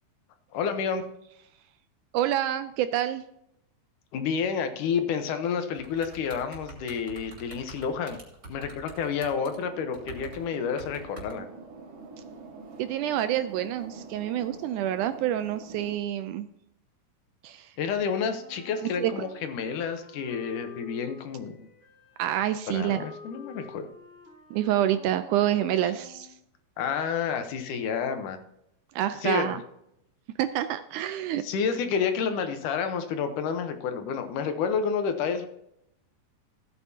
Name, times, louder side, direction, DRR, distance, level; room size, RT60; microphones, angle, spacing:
voice 1, 0.5-1.0 4.1-8.2 8.5-11.5 17.8-21.7 22.7-23.9 26.8-28.4 29.2-29.6 31.4-35.5, left 6 dB, 75° left, 7 dB, 2.4 m, -29 dB
voice 2, 2.1-3.2 12.8-16.5 17.4-17.7 19.0-19.1 22.2-23.0 24.5-26.3 29.0-29.6 30.4-31.4, right 12 dB, 80° right, 11 dB, 1.9 m, -27 dB
sound 1, 5.7-9.6 9.9-11.3, right 3 dB, 30° right, 3.2 m, -45 dB
sound 2, 9.3-16.0, right 4 dB, 55° right, 1.8 m, -45 dB
Wind instrument woodwind instrument, 18.3-26.4, left 4 dB, 45° left, 2.6 m, -49 dB
15.5 x 9.1 x 2.8 m, 0.78 s
omnidirectional pair, 3.9 m